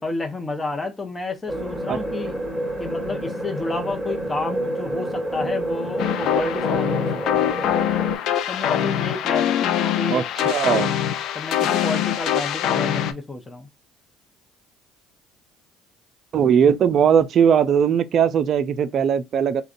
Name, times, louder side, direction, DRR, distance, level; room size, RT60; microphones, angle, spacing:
voice 1, 0.0-2.4 2.8-7.5 8.5-10.2 10.8-10.9 11.3-13.7, left 3 dB, 25° left, 0.7 m, -30 dB
sound 1, 1.5-8.2, right 1 dB, 5° right, 1.5 m, -28 dB
sound 2, 6.0-13.1, left 10 dB, 65° left, 0.4 m, -23 dB
voice 2, 10.1-10.9 16.3-19.6, right 8 dB, 50° right, 0.3 m, -19 dB
3.5 x 2.2 x 2.4 m
hypercardioid pair, 65°, 0 cm